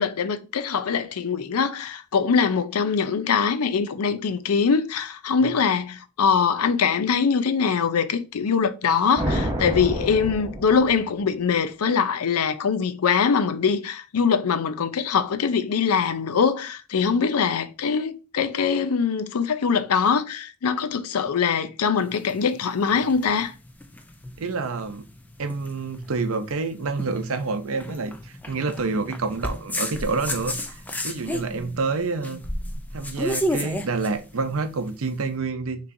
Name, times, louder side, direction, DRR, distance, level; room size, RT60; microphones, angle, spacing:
voice 1, 0.0-23.5, left 6 dB, 90° left, 0.5 m, -23 dB
sound 1, 9.1-11.3, equal, 20° right, 1.0 m, -28 dB
sound 2, 22.0-35.2, equal, 5° left, 0.4 m, -33 dB
voice 2, 24.4-25.0 25.4-32.4 32.9-35.8, right 4 dB, 70° right, 0.6 m, -28 dB
5.5 x 3.1 x 2.6 m
head